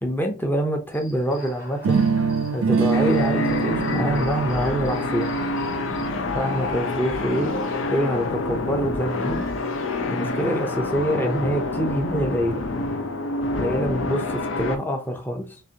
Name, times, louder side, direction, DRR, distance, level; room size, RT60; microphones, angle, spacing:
voice 1, 0.0-2.0 2.5-5.3 6.3-7.5 7.9-9.5 10.1-12.7 13.6-15.6, equal, 10° left, 0.5 m, -25 dB
Human voice / Cricket, 0.9-6.1, left 1 dB, 40° left, 1.2 m, -46 dB
sound 1, 1.8-7.8, right 5 dB, 75° right, 0.4 m, -25 dB
sound 2, 2.9-14.8, left 2 dB, 65° left, 0.6 m, -27 dB
6.2 x 2.4 x 2.8 m
head